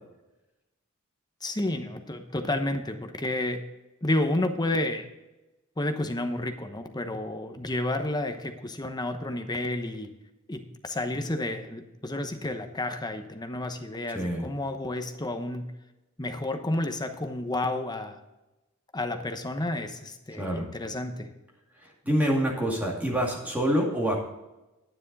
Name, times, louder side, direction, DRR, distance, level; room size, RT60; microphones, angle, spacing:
voice 1, 1.4-3.6 4.0-5.1 5.8-10.1 10.5-15.7 16.2-18.2 18.9-21.3, left 1 dB, 20° left, 7 dB, 0.9 m, -31 dB
voice 2, 14.1-14.5 20.4-20.6 22.0-24.2, equal, 5° right, -3 dB, 2.3 m, -26 dB
10.0 x 9.3 x 4.0 m, 1.0 s
head